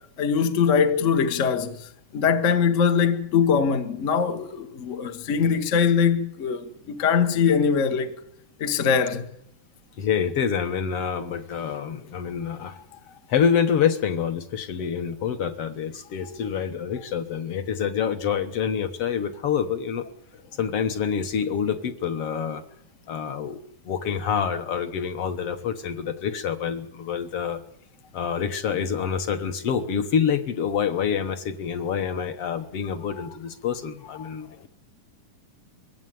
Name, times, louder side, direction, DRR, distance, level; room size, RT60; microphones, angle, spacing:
voice 1, 0.2-1.8 2.1-8.1 8.6-9.2 12.6-12.8 33.2-33.3 34.2-34.3, left 6 dB, 80° left, 0.6 m, -22 dB
voice 2, 10.0-12.8 13.3-20.0 20.6-22.6 23.1-23.6 23.9-27.6 28.1-34.7, left 7 dB, 60° left, 1.6 m, -27 dB
22.0 x 16.5 x 9.3 m
omnidirectional pair, 3.8 m